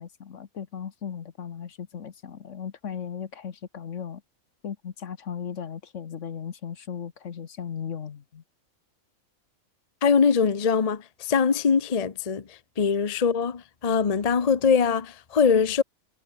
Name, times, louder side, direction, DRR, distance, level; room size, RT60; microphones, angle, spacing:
voice 1, 0.0-4.2 4.6-8.4, left 7 dB, 60° left, 1.4 m, -37 dB
voice 2, 10.0-15.8, left 6 dB, 30° left, 0.8 m, -22 dB
omnidirectional pair, 1.5 m